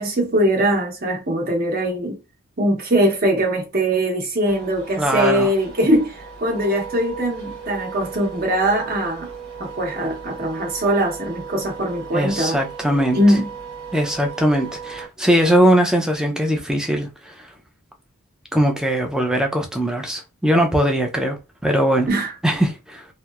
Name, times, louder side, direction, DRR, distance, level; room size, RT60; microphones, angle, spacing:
voice 1, 0.0-2.2 2.6-9.3 9.6-12.6 13.1-13.5 22.1-22.3, right 1 dB, 40° right, 0.8 m, -21 dB
sound 1, 4.5-15.1, right 6 dB, 75° right, 1.0 m, -36 dB
voice 2, 5.0-5.5 12.1-13.2 13.9-17.5 18.5-22.1 22.4-23.1, equal, 5° right, 0.4 m, -20 dB
2.8 x 2.0 x 2.2 m
head